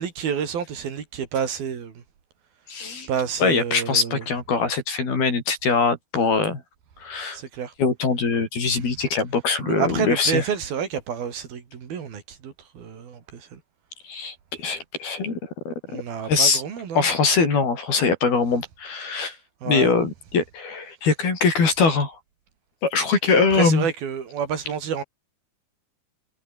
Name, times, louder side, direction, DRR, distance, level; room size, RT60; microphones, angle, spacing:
voice 1, 0.0-2.0 3.1-4.3 7.3-7.7 9.6-13.6 15.9-17.1 19.6-19.9 23.5-25.0, right 7 dB, 75° right, 5.1 m, -29 dB
voice 2, 2.7-3.1 3.4-6.6 7.0-7.4 7.8-10.4 14.0-15.4 15.7-16.0 16.3-16.6 16.9-19.4 19.6-22.2 22.8-23.9, left 4 dB, 75° left, 8.7 m, -22 dB
omnidirectional pair, 4.3 m